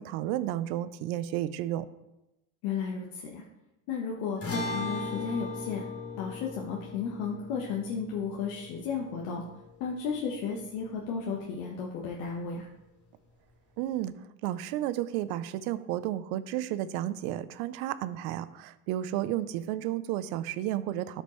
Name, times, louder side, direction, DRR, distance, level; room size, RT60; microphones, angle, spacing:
voice 1, 0.0-1.9 13.8-14.1 14.4-21.2, right 13 dB, 65° right, 15 dB, 0.7 m, -32 dB
voice 2, 2.6-3.4 3.9-5.8 6.2-9.4 9.8-12.7, left 6 dB, 65° left, -2 dB, 1.3 m, -34 dB
sound 1, 4.4-10.9, left 3 dB, 30° left, 2.6 m, -39 dB
12.5 x 5.2 x 3.2 m, 0.95 s
supercardioid pair, 100°, 47 cm